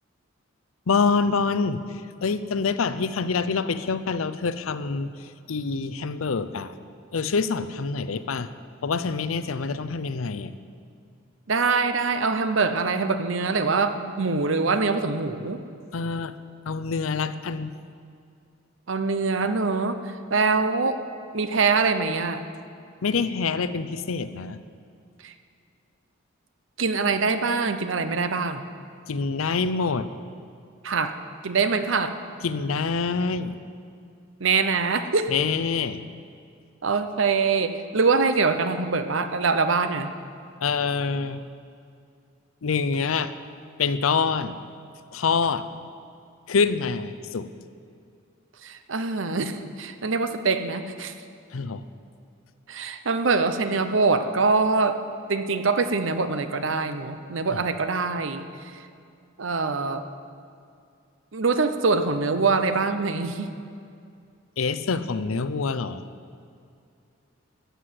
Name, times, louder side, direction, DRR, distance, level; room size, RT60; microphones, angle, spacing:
voice 1, 0.9-6.7 7.1-8.5 8.8-10.5 15.9-16.3 16.7-17.7 23.0-24.6 29.1-30.1 32.4-33.6 35.3-36.0 40.6-41.4 42.6-43.3 43.8-44.6 45.1-45.6 46.5-47.5 51.5-51.8 64.6-66.1, left 5 dB, 85° left, 13 dB, 0.6 m, -26 dB
voice 2, 11.5-15.6 18.9-21.0 21.3-22.4 25.2-25.3 26.8-28.6 30.8-31.2 31.4-32.1 34.4-35.3 36.8-40.1 48.6-51.1 52.7-55.0 55.3-58.8 59.4-60.0 61.3-63.5, right 4 dB, 70° right, 9 dB, 0.8 m, -24 dB
13.5 x 8.2 x 7.7 m, 2.4 s
head